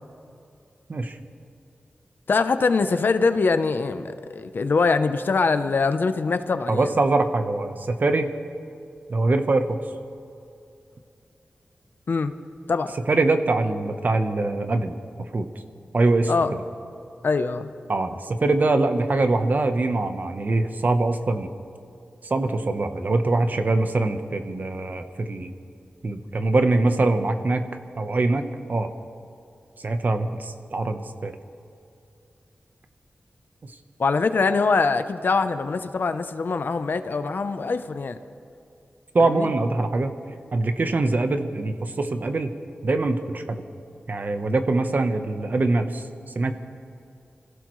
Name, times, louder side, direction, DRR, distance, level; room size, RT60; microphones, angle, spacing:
voice 1, 2.3-6.9 12.1-12.3 12.7-12.9 16.3-16.5 17.2-17.7 34.0-38.2 39.2-39.5, left 4 dB, 65° left, 10 dB, 0.8 m, -23 dB
voice 2, 6.7-8.3 9.1-9.8 13.1-15.0 15.3-15.5 15.9-16.3 17.9-21.5 22.2-25.5 26.0-27.7 28.0-28.9 29.8-31.3 39.1-40.1 40.5-42.5 42.8-43.6 44.1-46.0 46.3-46.5, right 2 dB, 50° right, 7 dB, 1.1 m, -23 dB
26.0 x 16.0 x 3.2 m, 2.6 s
wide cardioid pair, 85°, 4 cm